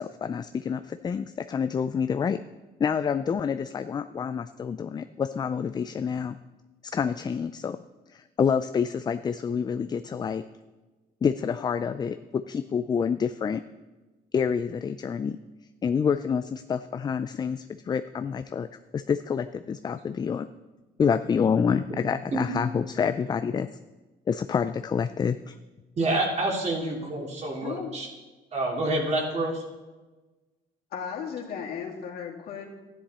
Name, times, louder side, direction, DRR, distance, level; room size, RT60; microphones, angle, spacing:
voice 1, 0.0-2.4 2.8-6.4 6.9-7.8 8.1-10.4 11.2-13.6 14.3-15.4 15.8-18.7 18.9-20.5 21.0-23.7 24.3-25.6, left 6 dB, 25° left, 12 dB, 0.4 m, -27 dB
voice 2, 26.0-28.1 28.5-29.6, right 2 dB, 40° right, -1 dB, 2.9 m, -27 dB
voice 3, 27.6-28.0 30.9-32.7, left 7 dB, 65° left, -1 dB, 2.4 m, -35 dB
13.0 x 10.0 x 4.2 m, 1.2 s
cardioid pair, 110°, 17 cm